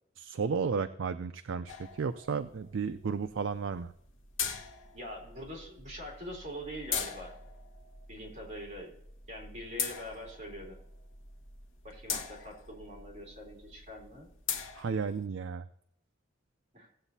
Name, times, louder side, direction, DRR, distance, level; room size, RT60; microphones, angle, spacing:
voice 1, 0.2-3.9 14.7-15.7, right 5 dB, 70° right, 9 dB, 0.4 m, -33 dB
sound 1, 1.7-15.3, left 6 dB, 75° left, 1.2 m, -42 dB
voice 2, 4.9-7.3 8.1-8.9 9.3-10.8 11.8-14.3 16.7-16.9, equal, 40° right, -1 dB, 3.1 m, -44 dB
17.5 x 8.0 x 2.7 m, 0.75 s
head